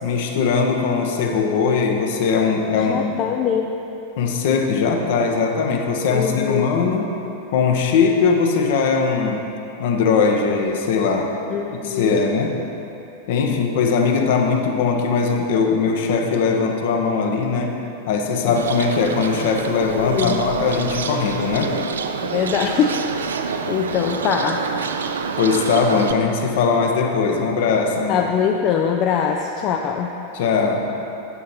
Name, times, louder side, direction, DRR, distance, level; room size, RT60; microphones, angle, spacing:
voice 1, 0.0-3.1 4.2-7.1 7.5-9.4 9.8-11.3 11.7-12.6 13.3-17.7 18.1-21.7 25.4-28.3 30.3-30.9, left 5 dB, 55° left, 2 dB, 0.9 m, -20 dB
voice 2, 2.7-3.7 6.1-6.7 11.5-12.2 13.5-13.6 18.5-18.6 20.0-20.4 22.2-23.1 23.4-24.6 28.1-30.1, left 7 dB, 35° left, 3 dB, 0.4 m, -23 dB
Bird, 18.6-26.1, right 5 dB, 65° right, 0.4 m, -27 dB
9.6 x 7.6 x 4.2 m, 2.9 s
figure-of-eight pair, 90°, 0 cm